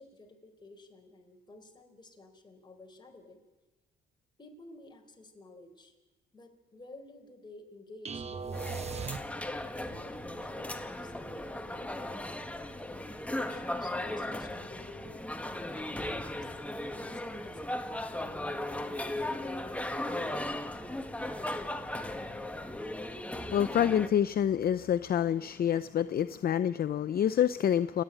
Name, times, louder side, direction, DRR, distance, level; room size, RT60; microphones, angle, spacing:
voice 1, 0.0-3.4 4.4-5.9 6.3-8.9 9.8-15.1 15.6-16.8 17.1-20.7 24.8-24.9, left 2 dB, 20° left, 3 dB, 4.3 m, -52 dB
sound 1, 8.1-9.8, right 5 dB, 35° right, 0.9 m, -39 dB
sound 2, 8.5-24.1, left 1 dB, 5° left, 1.5 m, -37 dB
voice 2, 23.5-28.0, left 9 dB, 50° left, 13 dB, 0.6 m, -27 dB
29.5 x 9.8 x 9.0 m, 1.1 s
cardioid pair, 90°, 20 cm